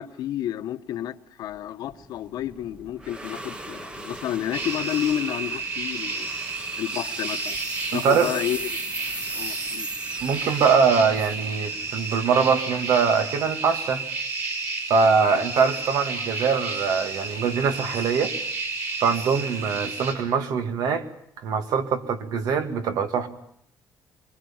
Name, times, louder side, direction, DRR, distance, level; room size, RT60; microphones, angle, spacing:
voice 1, 0.0-6.3 6.8-7.6 7.9-8.7 9.3-9.9, left 11 dB, 75° left, 9 dB, 1.3 m, -30 dB
sound 1, 1.5-12.7, right 1 dB, 15° right, 1.3 m, -39 dB
sound 2, 4.5-20.1, right 4 dB, 45° right, 6.7 m, -31 dB
voice 2, 7.9-8.3 10.2-14.0 14.9-18.3 19.0-21.1 21.4-23.3, right 5 dB, 70° right, 8 dB, 2.4 m, -23 dB
25.0 x 22.0 x 7.3 m, 0.70 s
cardioid pair, 155°, 7 cm